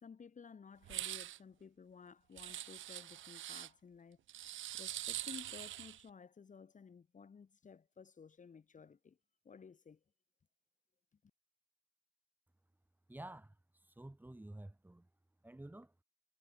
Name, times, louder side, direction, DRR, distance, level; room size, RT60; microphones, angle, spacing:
voice 1, 0.0-9.2 9.4-10.0, left 6 dB, 40° left, 3.2 m, -56 dB
sound 1, 0.8-1.4 2.4-3.7 4.3-6.0, right 13 dB, 75° right, 1.3 m, -44 dB
voice 2, 13.1-13.6 13.8-15.1 15.4-15.9, right 1 dB, 10° right, 2.7 m, -51 dB
cardioid pair, 90°, 20 cm